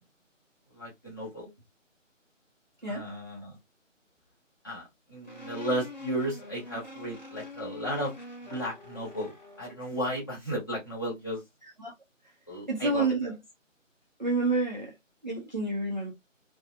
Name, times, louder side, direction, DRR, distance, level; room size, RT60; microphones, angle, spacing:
voice 1, 0.7-1.5 2.9-3.6 4.6-8.1 8.5-11.4 12.5-13.0, equal, 15° left, 1.1 m, -34 dB
sound 1, 5.2-9.8, left 2 dB, 35° left, 0.8 m, -45 dB
voice 2, 11.6-11.9 12.7-13.4 14.2-14.9 15.2-16.1, right 3 dB, 35° right, 0.6 m, -29 dB
2.8 x 2.2 x 2.4 m
figure-of-eight pair, 160°, 39 cm